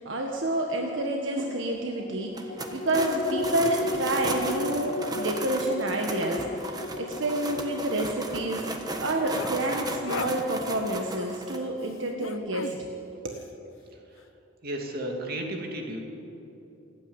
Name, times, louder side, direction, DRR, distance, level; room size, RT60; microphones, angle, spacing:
voice 1, 0.0-8.7 9.0-12.7 13.2-13.4, right 1 dB, 70° right, 1 dB, 1.6 m, -29 dB
sound 1, 2.0-12.8 13.2-13.3, left 2 dB, 40° left, 0.5 m, -37 dB
sound 2, 2.3-11.6, right 2 dB, 20° right, 1.3 m, -36 dB
sound 3, 9.1-9.5 10.0-10.3 12.2-12.8, left 5 dB, 90° left, 0.8 m, -35 dB
voice 2, 13.9-14.2 14.6-16.0, right 1 dB, 45° right, 1 dB, 2.8 m, -34 dB
28.0 x 9.6 x 9.7 m, 2.9 s
head